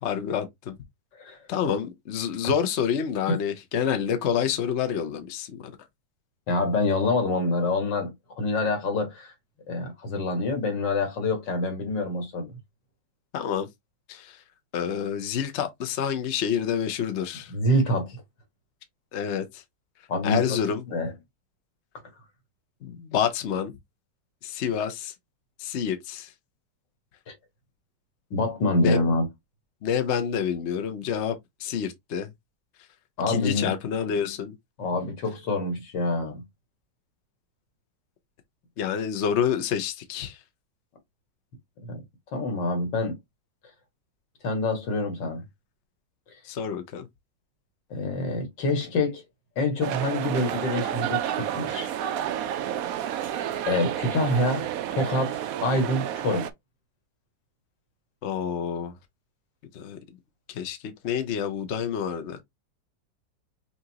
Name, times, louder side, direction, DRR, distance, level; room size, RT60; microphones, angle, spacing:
voice 1, 0.0-0.8 1.5-5.7 13.3-13.7 14.1-14.4 14.7-17.5 19.1-19.6 20.2-20.8 22.8-23.7 24.4-25.1 25.6-26.3 28.8-29.0 29.8-32.3 33.3-34.5 38.8-40.4 46.4-47.1 58.2-58.9 59.7-60.0 60.5-60.8 61.0-62.4, left 8 dB, 55° left, 0.8 m, -28 dB
voice 2, 6.5-9.3 9.7-12.5 17.5-18.2 20.1-20.6 20.9-21.1 27.3-27.4 28.3-29.3 33.2-33.7 34.8-36.4 41.8-42.0 42.3-43.2 44.4-45.4 47.9-49.2 49.6-51.9 53.7-54.6 54.9-56.5, left 2 dB, 70° left, 2.2 m, -26 dB
sound 1, 49.8-56.5, right 10 dB, 75° right, 0.8 m, -30 dB
5.7 x 2.5 x 2.8 m
omnidirectional pair, 2.0 m